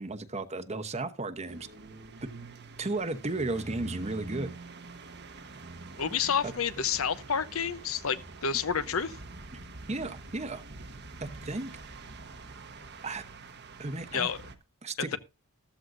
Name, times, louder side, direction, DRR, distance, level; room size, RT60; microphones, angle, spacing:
voice 1, 0.0-1.7 2.8-4.6 6.4-6.5 9.9-10.6 11.2-11.7 13.0-13.2 13.8-14.3 14.8-15.2, right 2 dB, 30° right, 1.0 m, -34 dB
sound 1, 1.5-14.5, right 3 dB, 50° right, 1.2 m, -45 dB
voice 2, 6.0-9.2 14.1-14.4, left 7 dB, 75° left, 0.9 m, -29 dB
14.0 x 13.5 x 2.6 m
head